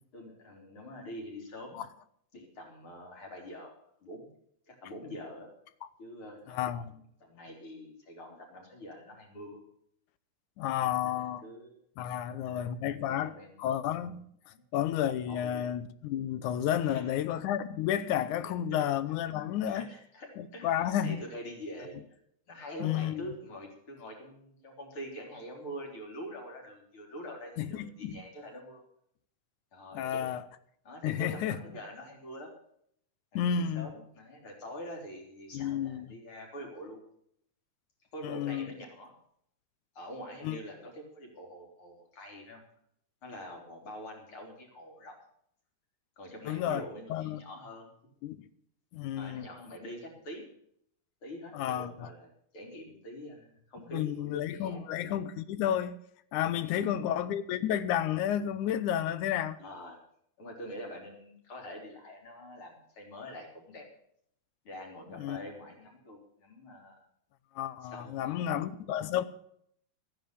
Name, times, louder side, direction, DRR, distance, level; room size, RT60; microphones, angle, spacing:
voice 1, 0.1-1.8 2.3-4.3 4.7-5.5 6.0-9.6 10.8-11.8 12.1-12.6 12.9-13.6 14.0-14.1 14.4-14.6 15.3-15.7 16.8-17.0 18.7-18.8 19.6-22.0 22.5-28.8 29.7-30.3 30.8-32.5 33.3-37.0 38.1-39.1 40.0-42.6 43.2-45.2 46.2-47.9 49.1-50.5 51.2-54.8 56.6-57.3 59.6-60.0 60.4-63.9 64.6-67.0 67.8-68.6, equal, 45° left, 4.3 m, -45 dB
voice 2, 6.5-6.9 10.6-11.4 12.0-13.3 13.6-14.2 14.7-19.9 20.4-21.2 22.8-23.3 27.6-28.2 29.9-30.4 31.0-31.6 33.4-33.9 35.5-36.1 38.2-38.7 40.4-40.6 46.5-46.8 47.1-47.4 48.2-48.5 48.9-49.4 51.5-51.9 53.9-56.0 56.3-59.6 65.2-65.4 67.6-69.2, left 10 dB, 80° left, 2.3 m, -31 dB
14.5 x 9.9 x 6.8 m
omnidirectional pair, 3.5 m